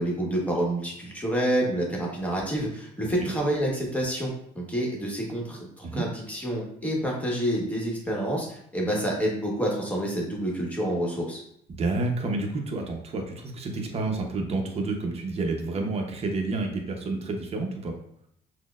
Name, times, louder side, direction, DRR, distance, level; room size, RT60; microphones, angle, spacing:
voice 1, 0.0-11.4, right 1 dB, 10° left, -2 dB, 1.1 m, -28 dB
voice 2, 11.7-17.9, right 3 dB, 40° right, 2 dB, 0.8 m, -29 dB
5.9 x 2.1 x 2.4 m, 0.71 s
cardioid pair, 110°, 17 cm